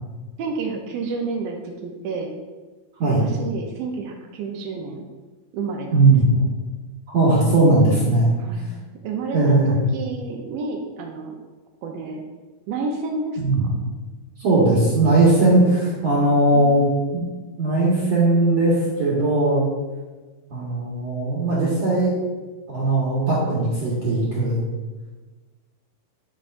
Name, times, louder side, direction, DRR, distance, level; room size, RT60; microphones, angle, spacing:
voice 1, 0.4-2.3 3.1-5.0 5.5-6.5 8.4-11.4 11.8-12.2 12.7-13.7 16.5-17.2, right 4 dB, 75° right, 2 dB, 2.2 m, -30 dB
voice 2, 5.9-6.3 7.1-8.3 9.3-9.8 13.4-13.6 14.4-16.8 17.1-17.2 17.6-19.7 20.5-22.3 22.7-24.6, right 2 dB, 55° right, -7 dB, 2.0 m, -18 dB
10.5 x 4.8 x 2.5 m, 1.3 s
omnidirectional pair, 4.5 m